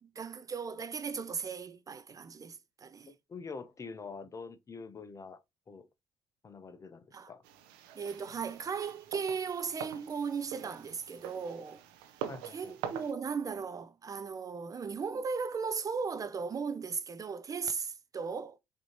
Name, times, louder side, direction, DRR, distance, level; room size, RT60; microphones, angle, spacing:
voice 1, 0.0-3.1 7.1-7.3 8.0-11.8 12.4-18.6, right 5 dB, 35° right, 0.5 m, -37 dB
voice 2, 3.1-5.4 5.7-5.9 6.4-7.4 12.3-12.8, left 4 dB, 30° left, 0.8 m, -45 dB
sound 1, 7.4-13.1, right 9 dB, 80° right, 0.8 m, -44 dB
5.2 x 2.9 x 2.9 m
hypercardioid pair, 65°, 11 cm